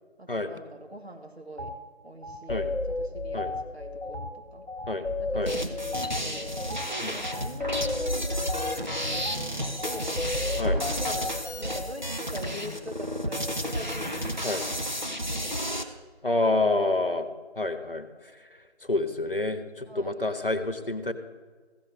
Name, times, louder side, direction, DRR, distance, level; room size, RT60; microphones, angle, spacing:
voice 1, 0.2-1.7 2.0-4.7 5.2-10.1 10.7-14.7 15.0-15.8 16.4-16.9 19.8-20.2, equal, 75° right, 3 dB, 1.9 m, -43 dB
sound 1, 1.6-1.8 2.2-11.9, left 2 dB, 85° left, 1.0 m, -33 dB
sound 2, 5.5-15.8, equal, 45° right, 0.8 m, -32 dB
voice 2, 16.2-17.3 17.6-21.1, left 2 dB, 55° left, 9 dB, 0.9 m, -28 dB
15.0 x 6.2 x 6.4 m, 1.5 s
figure-of-eight pair, 175°, 32 cm